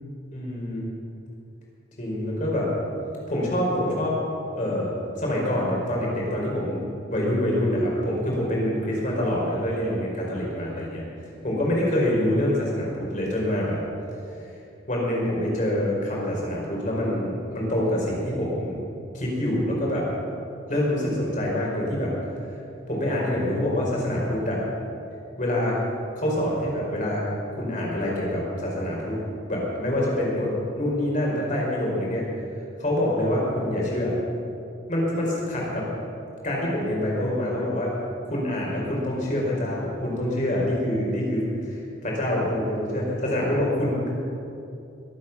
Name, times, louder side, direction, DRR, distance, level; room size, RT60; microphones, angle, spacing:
voice 1, 0.3-0.8 2.0-2.7 3.3-4.2 4.5-11.0 11.4-13.8 14.9-18.7 19.1-20.1 20.7-22.1 22.9-24.6 25.4-25.8 26.1-27.2 27.6-29.1 29.5-32.3 32.8-34.2 34.9-35.9 36.4-38.0 38.2-44.1, left 1 dB, 40° left, -3 dB, 4.6 m, -26 dB
21.5 x 8.8 x 6.0 m, 2.6 s
head